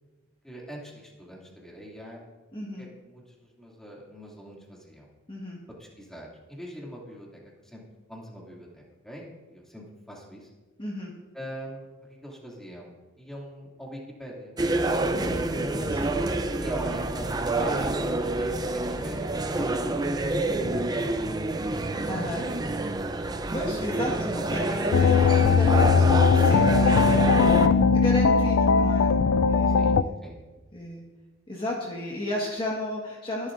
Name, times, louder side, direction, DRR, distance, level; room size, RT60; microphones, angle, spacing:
voice 1, 0.4-2.2 2.8-5.1 5.8-7.8 8.1-10.5 11.3-14.6 16.6-19.3 19.6-21.6 22.2-22.4 29.7-30.4, equal, 5° left, -3 dB, 2.5 m, -43 dB
voice 2, 2.5-2.8 5.3-5.6 10.8-11.1 15.1-16.6 22.0-22.4 23.5-30.2 30.7-31.0 31.5-33.5, left 1 dB, 25° left, -3 dB, 1.6 m, -34 dB
sound 1, 14.6-27.7, right 2 dB, 20° right, 0.5 m, -28 dB
sound 2, 24.9-30.0, left 5 dB, 85° left, 0.4 m, -19 dB
22.0 x 11.5 x 2.6 m, 1.2 s
head